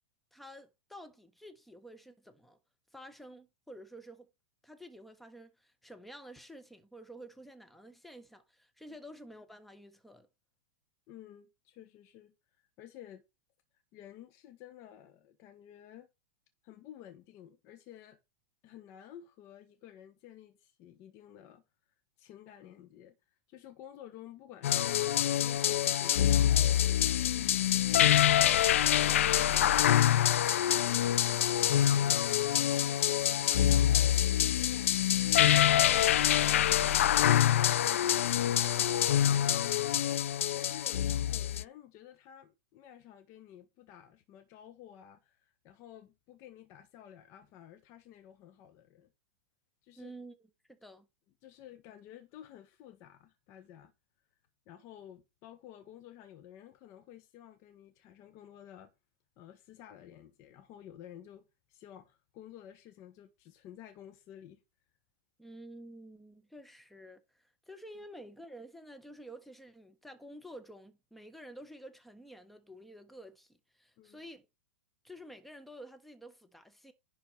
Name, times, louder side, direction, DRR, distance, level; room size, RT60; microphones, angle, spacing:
voice 1, 0.3-2.6 2.9-4.3 4.6-10.3 50.0-51.1 65.4-74.4 75.0-76.9, equal, ahead, 1.4 m, -50 dB
voice 2, 11.1-12.3 12.8-13.2 13.9-16.1 16.6-18.2 18.6-21.6 22.2-23.2 23.5-36.2 40.5-49.1 49.8-50.1 51.4-53.9 54.7-58.9 59.4-64.6 74.0-74.2, left 11 dB, 40° left, 1.6 m, -52 dB
sound 1, 24.6-41.6, left 11 dB, 75° left, 0.5 m, -26 dB
10.5 x 4.3 x 5.8 m
hypercardioid pair, 125°, 7 cm